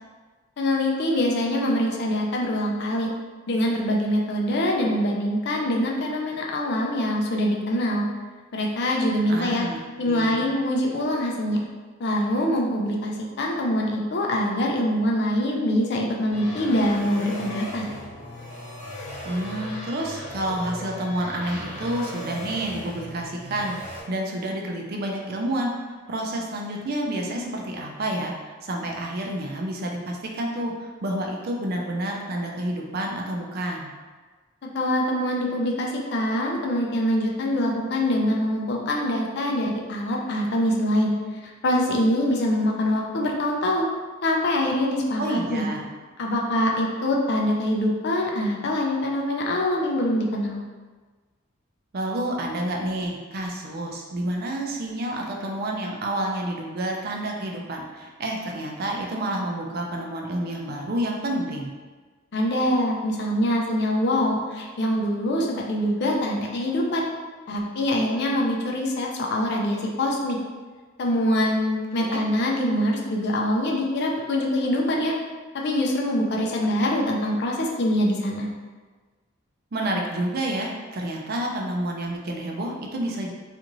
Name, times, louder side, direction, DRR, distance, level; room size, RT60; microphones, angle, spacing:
voice 1, 0.6-3.1 3.5-8.0 8.5-9.7 10.0-11.6 12.0-17.9 34.7-41.1 41.4-43.9 44.2-45.7 46.2-50.6 62.3-67.0 67.5-70.4 71.0-75.1 75.5-78.5, left 1 dB, 55° left, -1 dB, 0.4 m, -24 dB
voice 2, 9.3-10.4 19.2-25.7 26.1-33.9 45.2-45.9 51.9-61.7 72.0-72.2 79.7-83.3, right 1 dB, 50° right, 0 dB, 0.4 m, -29 dB
sound 1, 16.3-24.0, left 1 dB, 35° left, 0.9 m, -37 dB
2.5 x 2.5 x 2.9 m, 1.4 s
head